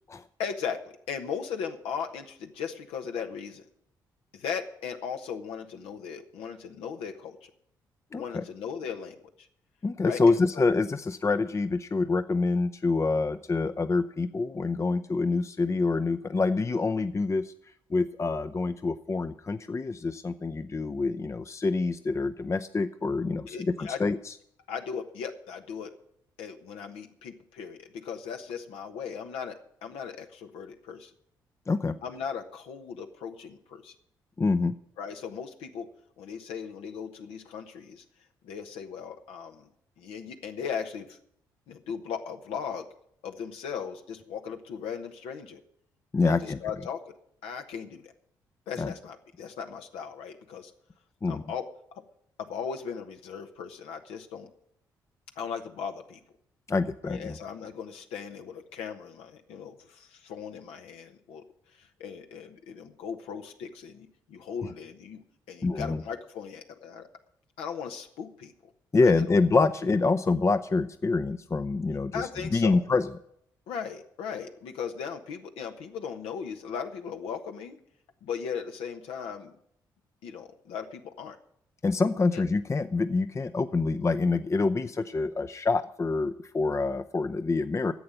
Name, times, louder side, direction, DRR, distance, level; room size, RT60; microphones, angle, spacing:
voice 1, 0.4-0.8 1.1-3.6 4.3-7.5 8.1-9.5 10.0-10.6 23.5-24.0 24.7-25.9 26.4-31.1 32.0-33.9 35.0-35.9 36.2-38.0 38.4-39.7 40.0-41.2 41.7-42.9 43.2-45.6 46.2-47.0 47.4-48.1 48.7-50.7 51.3-51.7 52.4-54.5 55.4-56.2 57.0-61.4 61.8-65.2 65.5-67.1 67.6-68.5 69.0-69.4 69.8-69.9 72.1-72.8 73.7-77.8 78.2-79.5 80.2-81.4 82.3-82.4, left 7 dB, 75° left, 5 dB, 1.1 m, -37 dB
voice 2, 8.1-8.4 9.8-17.5 17.9-24.3 31.7-32.0 34.4-34.7 46.1-46.6 48.8-48.9 51.2-51.4 56.7-57.4 64.6-64.7 65.6-66.0 68.9-73.1 81.8-87.9, left 3 dB, 30° left, 10 dB, 0.6 m, -26 dB
11.0 x 7.6 x 9.9 m, 0.71 s
hypercardioid pair, 45°, 10 cm